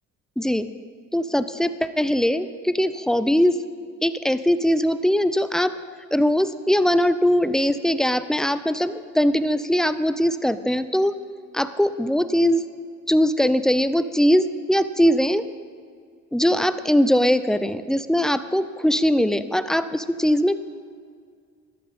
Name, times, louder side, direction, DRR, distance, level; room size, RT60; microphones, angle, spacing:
voice 1, 0.4-0.7 1.1-3.6 4.0-5.8 6.1-11.1 11.5-12.6 13.1-15.4 16.3-20.6, equal, ahead, 12 dB, 0.6 m, -21 dB
15.5 x 11.5 x 5.4 m, 2.1 s
cardioid pair, 90°, 30 cm